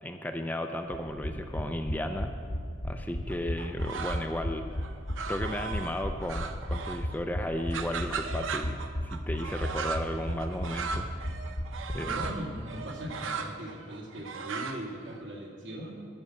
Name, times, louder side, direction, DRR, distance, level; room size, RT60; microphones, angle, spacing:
voice 1, 0.0-2.3 2.8-4.7 5.2-8.8 9.0-11.1 11.9-12.2, left 1 dB, 10° left, 5 dB, 0.4 m, -34 dB
sound 1, 0.9-12.6 12.9-13.0 13.2-13.3, equal, 80° left, 1.4 m, -35 dB
sound 2, 3.3-4.4 4.8-7.1 7.4-15.2, right 5 dB, 90° right, 0.7 m, -37 dB
voice 2, 12.0-16.0, right 1 dB, 70° right, -1 dB, 2.2 m, -39 dB
11.0 x 6.4 x 7.8 m, 2.2 s
head